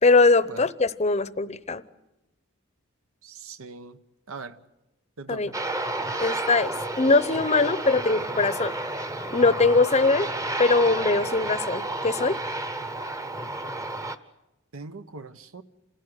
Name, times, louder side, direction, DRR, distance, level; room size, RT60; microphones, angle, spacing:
voice 1, 0.0-1.8 5.3-5.5 6.2-8.7 9.3-10.3 10.6-12.4, left 3 dB, 30° left, 0.8 m, -21 dB
voice 2, 3.2-4.0 4.3-4.6 5.2-5.5 14.7-15.6, right 4 dB, 80° right, 1.1 m, -40 dB
Aircraft, 5.5-14.2, right 2 dB, 15° right, 0.9 m, -31 dB
27.5 x 17.0 x 9.9 m
head